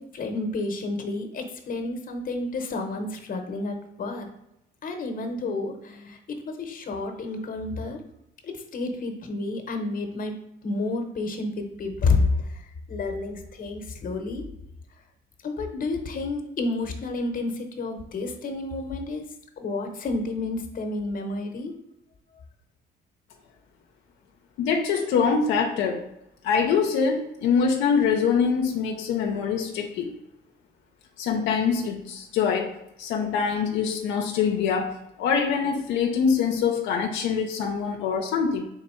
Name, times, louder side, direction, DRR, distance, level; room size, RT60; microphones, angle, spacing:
voice 1, 0.0-4.3 4.8-8.0 8.4-10.3 10.6-14.5 15.4-19.3 19.6-21.8, left 3 dB, 45° left, 5 dB, 0.8 m, -30 dB
voice 2, 24.6-26.1 26.4-30.1 31.2-38.7, left 6 dB, 85° left, 3 dB, 0.5 m, -24 dB
3.7 x 2.6 x 4.3 m, 0.85 s
cardioid pair, 85°, 19 cm